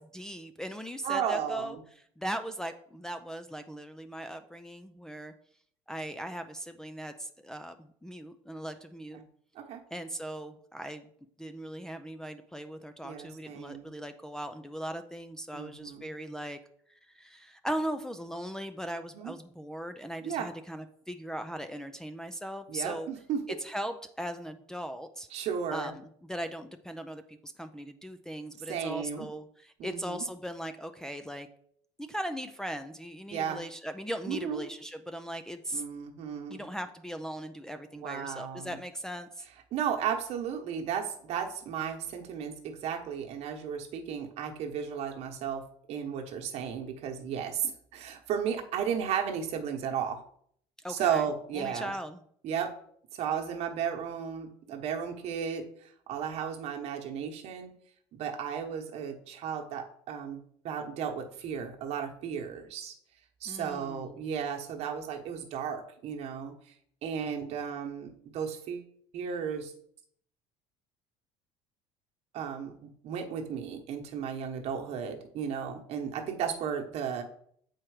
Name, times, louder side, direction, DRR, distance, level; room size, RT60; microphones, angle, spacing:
voice 1, 0.1-1.8 2.2-5.3 5.9-7.7 8.0-9.2 9.9-11.1 11.4-16.6 17.1-23.1 23.6-25.3 25.7-31.5 32.0-35.8 36.5-39.4 50.8-51.3 51.5-52.2 63.5-64.2, right 1 dB, 5° left, 6 dB, 0.4 m, -39 dB
voice 2, 1.0-1.8 9.1-9.2 9.6-9.8 13.0-13.9 15.5-16.1 19.1-19.3 20.2-20.5 22.7-23.4 25.3-25.9 28.7-29.3 29.8-30.3 33.3-33.6 34.3-34.6 35.7-36.7 38.0-38.8 39.7-50.2 50.9-51.9 52.4-52.7 53.1-55.7 56.1-57.7 58.1-62.9 63.4-66.5 67.0-69.7 72.3-72.7 73.0-77.2, right 7 dB, 55° right, 4 dB, 1.2 m, -34 dB
7.4 x 4.5 x 4.9 m, 0.65 s
cardioid pair, 115°, 13 cm